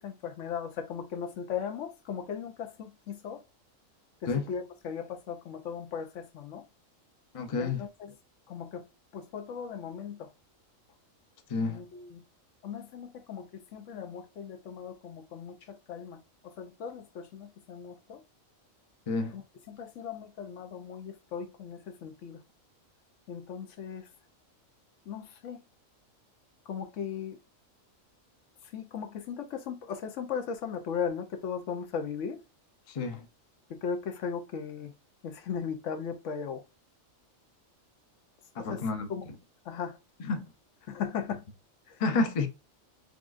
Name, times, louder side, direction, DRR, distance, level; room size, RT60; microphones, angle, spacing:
voice 1, 0.0-3.4 4.2-6.7 7.6-8.1 8.5-8.9 9.1-10.3 11.6-12.2 12.6-18.2 19.3-22.4 23.3-24.1 25.1-25.6 26.7-27.4 28.6-32.4 33.7-34.9 35.2-36.6 38.6-39.3 39.6-40.0 40.9-41.4 41.9-42.0, left 7 dB, 70° left, 1.0 m, -37 dB
voice 2, 7.3-7.8 11.5-11.8 19.1-19.3 32.9-33.2 38.5-39.1 40.2-40.5 42.0-42.5, left 3 dB, 35° left, 0.6 m, -29 dB
6.3 x 2.4 x 2.5 m
omnidirectional pair, 1.4 m